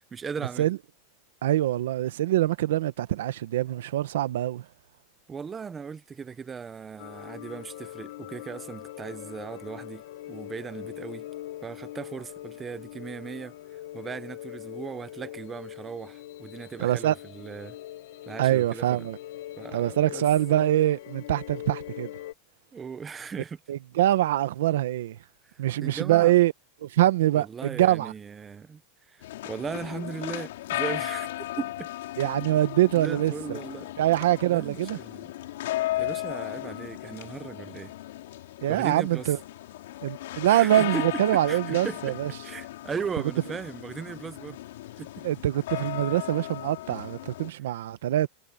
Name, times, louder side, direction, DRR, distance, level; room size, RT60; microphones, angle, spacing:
voice 1, 0.1-0.7 5.3-11.3 11.6-17.8 18.3-19.1 19.6-20.2 22.7-23.6 25.4-26.3 27.3-28.8 29.1-31.3 31.6-31.9 32.9-33.9 34.4-35.3 36.0-37.9 38.7-39.3 40.4-42.2 42.4-44.6 45.0-45.3, right 6 dB, 15° right, 0.7 m, -37 dB
voice 2, 1.4-4.6 16.8-17.1 18.4-19.2 19.7-22.1 23.7-25.2 25.6-26.5 26.8-28.1 32.2-33.6 34.0-35.0 38.6-39.4 40.0-42.3 45.2-48.3, right 14 dB, 90° right, 1.2 m, -24 dB
sound 1, 7.0-22.3, left 14 dB, 70° left, 1.0 m, -42 dB
sound 2, 29.2-47.5, left 15 dB, 85° left, 5.0 m, -36 dB
supercardioid pair, 165°, 0 cm